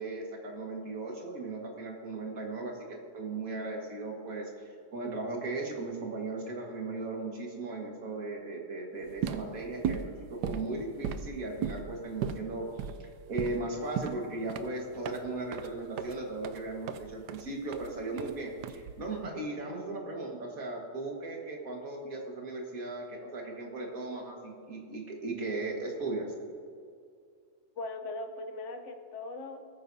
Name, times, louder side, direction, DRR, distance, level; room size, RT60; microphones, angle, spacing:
voice 1, 0.0-2.8 3.1-26.3, right 2 dB, 45° right, 0 dB, 1.9 m, -37 dB
sound 1, 9.0-19.2, right 8 dB, 80° right, 0.9 m, -37 dB
voice 2, 27.8-29.7, left 2 dB, 65° left, 6 dB, 0.7 m, -39 dB
19.0 x 9.3 x 2.7 m, 2.2 s
omnidirectional pair, 2.3 m